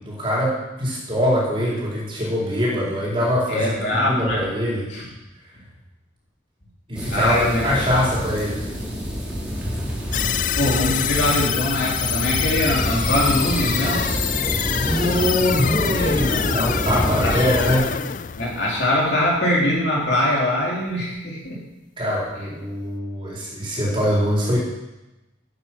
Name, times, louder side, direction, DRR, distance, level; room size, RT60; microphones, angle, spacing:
voice 1, 0.0-4.9 6.9-8.7 14.4-17.9 22.0-24.6, equal, 25° right, -5 dB, 4.3 m, -23 dB
voice 2, 3.5-4.5 4.9-5.1 7.1-7.7 10.3-14.1 16.2-16.7 17.2-17.4 18.4-21.6, left 1 dB, 55° left, -4 dB, 3.6 m, -22 dB
sound 1, 6.9-17.8, equal, 5° right, 3.1 m, -27 dB
sound 2, 10.1-19.4, left 10 dB, 40° left, 0.4 m, -26 dB
13.0 x 9.3 x 6.0 m, 1.0 s
head